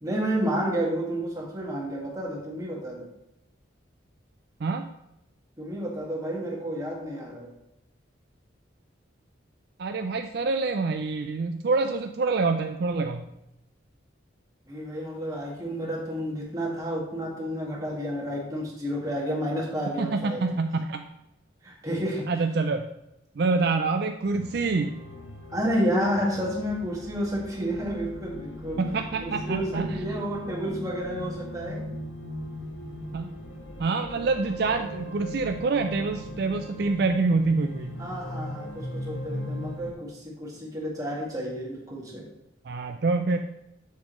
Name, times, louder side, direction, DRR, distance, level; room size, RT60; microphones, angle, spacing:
voice 1, 0.0-3.1 5.6-7.5 14.7-20.5 21.6-22.3 25.5-28.8 29.2-31.9 38.0-42.3, equal, 20° right, -3 dB, 1.9 m, -30 dB
voice 2, 9.8-13.3 20.0-21.0 22.3-22.8 23.4-24.9 28.8-30.0 33.1-33.3 33.8-38.0 42.6-43.4, right 3 dB, 55° right, 6 dB, 0.4 m, -26 dB
sound 1, 24.2-39.9, left 1 dB, 80° left, 1.3 m, -38 dB
7.4 x 7.1 x 3.1 m, 0.85 s
head